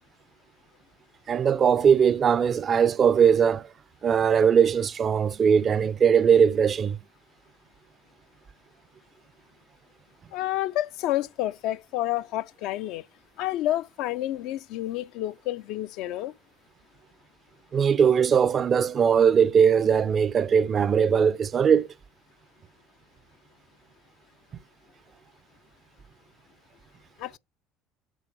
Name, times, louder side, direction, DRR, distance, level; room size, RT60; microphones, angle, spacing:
voice 1, 1.3-3.7 4.0-7.0 17.7-21.9, right 7 dB, 40° right, 0.4 m, -20 dB
voice 2, 10.3-13.0 13.4-16.3 27.2-27.4, left 14 dB, 60° left, 0.3 m, -29 dB
6.2 x 4.3 x 5.9 m
figure-of-eight pair, 60°, 0 cm